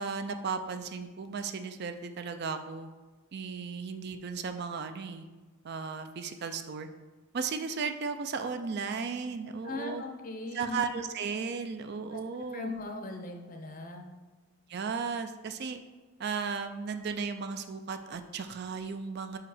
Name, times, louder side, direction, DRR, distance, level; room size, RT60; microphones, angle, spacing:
voice 1, 0.0-2.9 3.3-5.3 5.6-6.9 7.3-10.0 10.5-12.7 14.7-15.8 16.2-19.4, right 5 dB, 50° right, 8 dB, 0.4 m, -35 dB
voice 2, 9.6-10.8 12.1-12.2 12.5-14.1, left 2 dB, 40° left, 3 dB, 0.7 m, -39 dB
5.3 x 4.8 x 4.9 m, 1.3 s
head